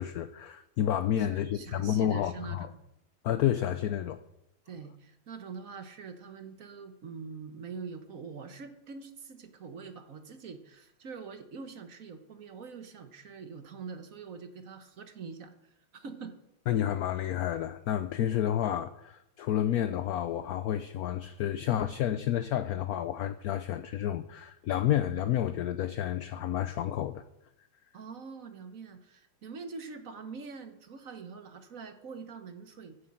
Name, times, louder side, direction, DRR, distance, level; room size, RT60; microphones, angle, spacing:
voice 1, 0.0-2.7 3.2-4.2 16.7-27.2, left 11 dB, 70° left, 0.9 m, -30 dB
voice 2, 1.2-2.8 4.7-16.4 27.9-33.0, right 5 dB, 50° right, 1.4 m, -44 dB
12.0 x 9.5 x 7.6 m
omnidirectional pair, 2.0 m